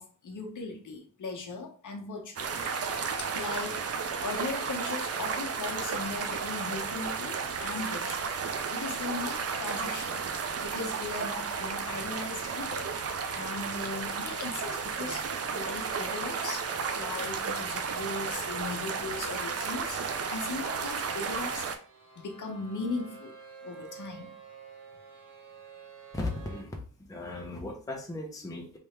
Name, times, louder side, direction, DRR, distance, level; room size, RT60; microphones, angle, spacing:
voice 1, 0.0-2.5 3.2-8.3 8.7-10.3 10.6-12.9 13.3-15.3 15.5-16.7 17.0-21.7 22.2-23.3 23.6-24.3, left 3 dB, 55° left, 2 dB, 0.9 m, -38 dB
sound 1, 2.4-21.8, right 5 dB, 45° right, 0.4 m, -33 dB
sound 2, 17.0-26.6, right 5 dB, 65° right, 1.3 m, -51 dB
voice 2, 26.1-28.8, left 2 dB, 10° left, 1 dB, 0.6 m, -37 dB
3.4 x 2.9 x 3.2 m, 0.42 s
wide cardioid pair, 135°, 37 cm